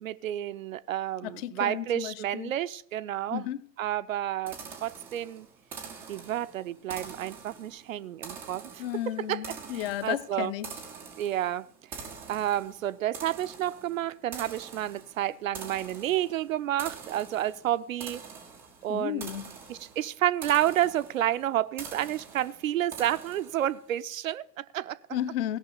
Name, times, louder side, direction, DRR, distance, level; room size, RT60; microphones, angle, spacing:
voice 1, 0.0-3.4 3.8-5.5 6.1-8.8 9.2-9.4 9.7-10.5 11.2-11.7 12.3-18.2 18.8-19.3 19.7-25.0, right 12 dB, 55° right, 0.6 m, -30 dB
voice 2, 1.2-2.5 3.3-3.6 8.8-10.7 18.9-19.5 25.1-25.6, left 12 dB, 35° left, 0.7 m, -33 dB
sound 1, 4.5-23.8, right 6 dB, 5° right, 0.4 m, -45 dB
17.0 x 6.0 x 6.5 m
figure-of-eight pair, 105°, 50 cm